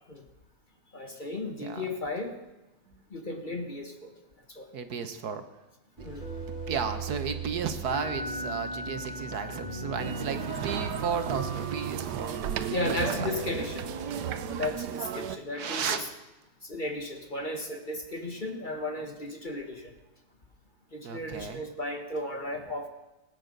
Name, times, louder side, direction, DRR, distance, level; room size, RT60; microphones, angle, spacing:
voice 1, 0.9-2.4 3.1-4.1 4.5-4.7 6.0-6.3 12.7-13.9 14.5-16.1 16.6-19.9 20.9-22.9, left 2 dB, 30° left, 5 dB, 1.5 m, -35 dB
voice 2, 1.6-1.9 4.7-5.4 6.0-6.1 6.7-12.4 12.8-13.3 15.5-16.0 21.0-21.6, right 6 dB, 70° right, 8 dB, 1.6 m, -34 dB
sound 1, 6.0-14.6, right 2 dB, 30° right, 3.1 m, -38 dB
sound 2, 10.0-15.4, right 10 dB, 90° right, 1.4 m, -34 dB
19.5 x 8.9 x 6.7 m, 1.0 s
omnidirectional pair, 1.8 m